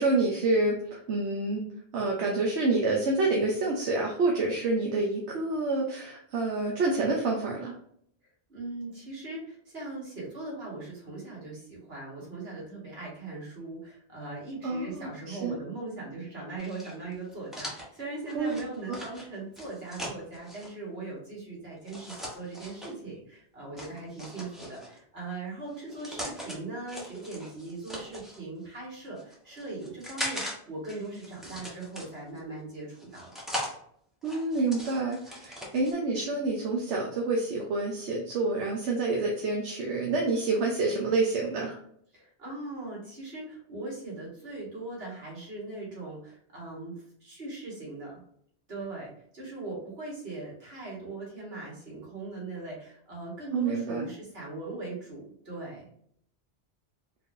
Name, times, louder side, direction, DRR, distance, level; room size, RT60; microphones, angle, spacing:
voice 1, 0.0-1.6 1.9-7.7 14.6-15.6 18.3-18.5 18.9-19.0 34.2-41.8 53.5-54.1, right 3 dB, 75° right, -1 dB, 1.1 m, -28 dB
voice 2, 8.5-33.3 42.1-46.9 47.2-48.2 48.7-55.9, right 2 dB, 60° right, -4 dB, 2.1 m, -40 dB
sound 1, 16.6-20.7 21.8-22.9 23.8-25.0 25.7-26.6 26.9-28.4 29.0-30.5 30.8-32.4 33.0-33.7 34.2-35.9, equal, ahead, 1.0 m, -40 dB
4.3 x 3.6 x 2.7 m, 0.65 s
omnidirectional pair, 1.2 m